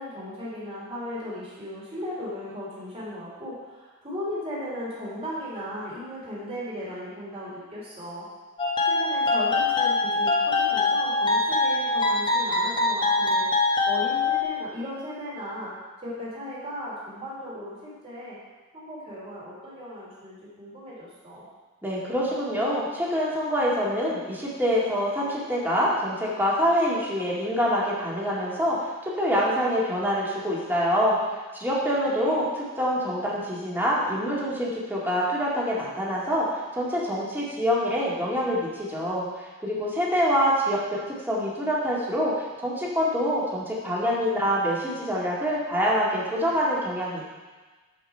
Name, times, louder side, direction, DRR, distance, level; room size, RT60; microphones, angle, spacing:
voice 1, 0.0-8.3 8.8-13.5 13.8-15.7 16.0-18.4 18.7-21.4 32.0-32.4, left 1 dB, 30° right, -7 dB, 3.2 m, -36 dB
sound 1, 8.6-14.4, left 3 dB, 20° left, 1.1 m, -23 dB
voice 2, 21.8-28.8 29.2-39.3 39.6-41.0 41.3-42.3 42.6-47.2, equal, 10° right, -6 dB, 2.0 m, -25 dB
13.0 x 5.1 x 4.4 m, 1.3 s
head